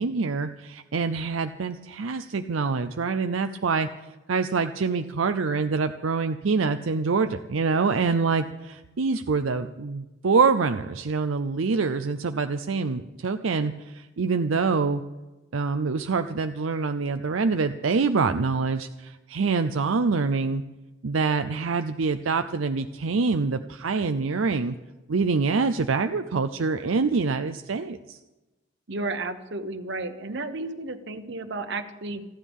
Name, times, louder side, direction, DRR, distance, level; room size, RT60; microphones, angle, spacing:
voice 1, 0.0-3.9 4.3-15.0 15.5-20.6 21.0-24.8 25.1-28.2, right 4 dB, 80° right, 8 dB, 0.6 m, -25 dB
voice 2, 28.9-32.2, right 2 dB, 60° right, 9 dB, 1.2 m, -32 dB
30.0 x 10.5 x 3.6 m, 1.1 s
head